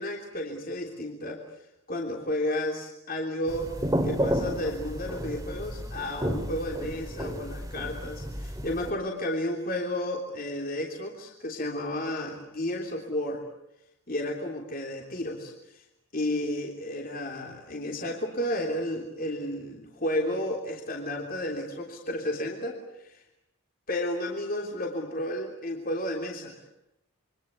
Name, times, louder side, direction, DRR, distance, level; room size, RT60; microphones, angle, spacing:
voice 1, 0.0-1.4 1.9-3.7 4.0-13.4 14.1-15.8 16.1-23.2 23.9-26.6, left 1 dB, 40° left, 1 dB, 3.3 m, -32 dB
sound 1, 3.5-8.9, equal, 15° right, 2.5 m, -32 dB
28.0 x 24.5 x 8.3 m, 0.86 s
head